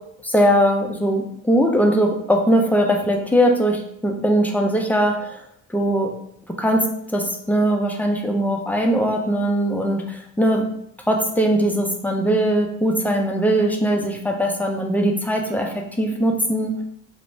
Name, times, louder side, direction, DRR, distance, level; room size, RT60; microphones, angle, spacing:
voice 1, 0.2-5.4 5.7-6.1 6.6-10.6 11.1-16.7, equal, 5° left, 2 dB, 0.4 m, -20 dB
2.4 x 2.1 x 3.1 m, 0.72 s
cardioid pair, 90°, 30 cm